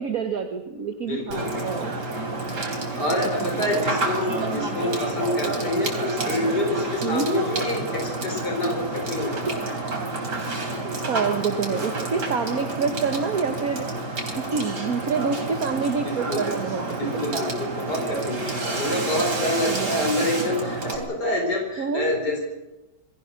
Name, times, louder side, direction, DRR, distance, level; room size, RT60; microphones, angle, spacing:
voice 1, 0.0-1.8 3.4-3.8 7.0-7.3 9.5-9.6 10.8-13.9 14.5-17.5 18.9-19.1 19.7-20.1 21.8-22.2, right 5 dB, 60° right, 6 dB, 1.7 m, -27 dB
voice 2, 1.0-1.6 2.9-9.6 16.1-16.6 16.9-22.4, left 1 dB, 75° left, 2 dB, 5.2 m, -27 dB
Water / Water tap faucet / Sink (filling or washing), 1.3-21.0, right 2 dB, 85° right, 4.4 m, -29 dB
27.5 x 21.5 x 6.4 m, 1.0 s
omnidirectional pair, 1.8 m